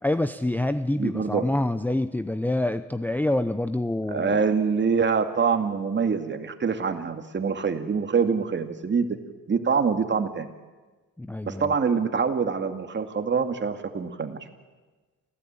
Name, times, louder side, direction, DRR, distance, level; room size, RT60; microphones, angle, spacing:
voice 1, 0.0-4.4 11.2-11.7, left 1 dB, 5° left, 9 dB, 0.7 m, -26 dB
voice 2, 1.0-1.5 4.1-9.1 9.5-10.5 11.5-14.4, right 5 dB, 40° right, 7 dB, 2.3 m, -25 dB
28.0 x 15.5 x 8.9 m, 1.3 s
cardioid pair, 90°, 30 cm